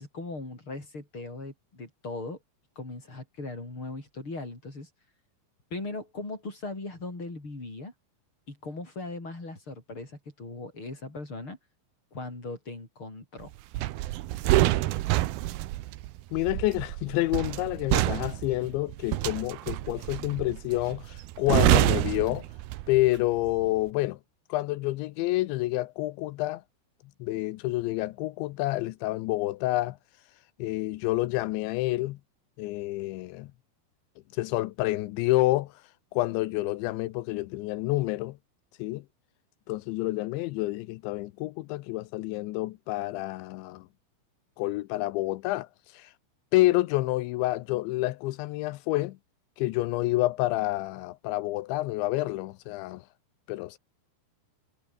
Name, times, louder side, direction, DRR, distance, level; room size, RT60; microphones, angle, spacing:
voice 1, 0.0-2.4 2.8-4.9 5.7-7.9 8.5-11.6 12.1-13.5, left 2 dB, 25° left, 7.7 m, -39 dB
sound 1, 13.7-23.1 23.4-23.7, right 16 dB, 75° right, 2.4 m, -27 dB
voice 2, 16.3-22.5 22.9-24.2 24.5-26.6 27.2-30.0 30.6-32.2 32.6-33.5 34.3-35.7 36.1-38.4 38.8-39.0 39.7-43.9 44.6-46.1 46.5-49.2 49.6-53.1 53.5-53.8, left 18 dB, 85° left, 3.1 m, -28 dB
omnidirectional pair, 5.3 m